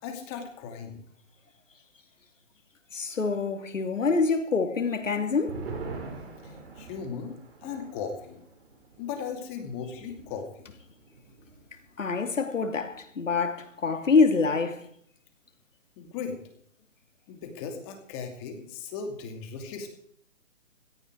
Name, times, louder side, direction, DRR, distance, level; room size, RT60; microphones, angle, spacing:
voice 1, 0.0-1.0 6.4-7.3 7.6-8.4 9.0-10.7 16.0-16.4 17.3-19.9, left 6 dB, 20° left, 2.7 m, -37 dB
voice 2, 2.9-5.6 12.0-14.9, left 4 dB, 75° left, 2.9 m, -26 dB
sound 1, 4.9-11.8 12.1-12.2 12.6-13.1, right 4 dB, 50° right, 5.2 m, -44 dB
17.0 x 14.0 x 4.8 m
hypercardioid pair, 155°, 39 cm